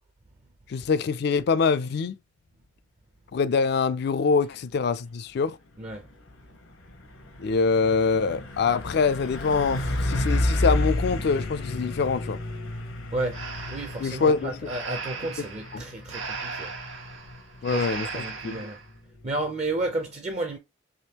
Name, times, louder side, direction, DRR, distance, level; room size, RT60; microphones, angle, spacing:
voice 1, 0.7-2.2 3.3-5.6 7.4-12.4 14.0-14.6 15.7-15.8 17.6-18.1 18.4-18.6, left 5 dB, 55° left, 0.3 m, -24 dB
Truck, 5.7-20.0, left 1 dB, 80° left, 0.9 m, -32 dB
voice 2, 5.8-6.1 13.1-13.4 13.7-16.7 17.7-18.8 19.2-20.6, right 2 dB, 35° right, 0.4 m, -32 dB
Breathing, 13.3-18.8, right 4 dB, 75° right, 1.2 m, -37 dB
3.6 x 2.9 x 2.8 m
head